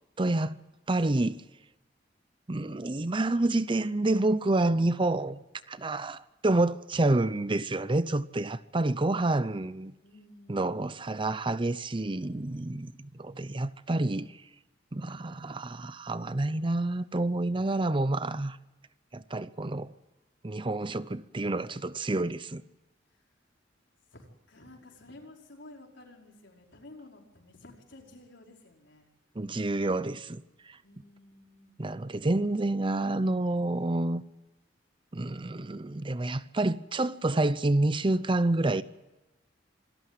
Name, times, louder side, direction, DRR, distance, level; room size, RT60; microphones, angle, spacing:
voice 1, 0.2-0.6 0.9-1.4 2.5-5.4 5.7-9.9 10.5-14.4 14.9-18.6 19.1-19.9 20.4-22.6 29.4-30.8 31.8-34.2 35.1-38.8, right 2 dB, 25° right, 0.6 m, -28 dB
voice 2, 10.0-10.7 23.1-23.2 24.1-29.1 30.8-31.8, left 2 dB, 70° left, 5.3 m, -52 dB
26.0 x 14.0 x 9.2 m
head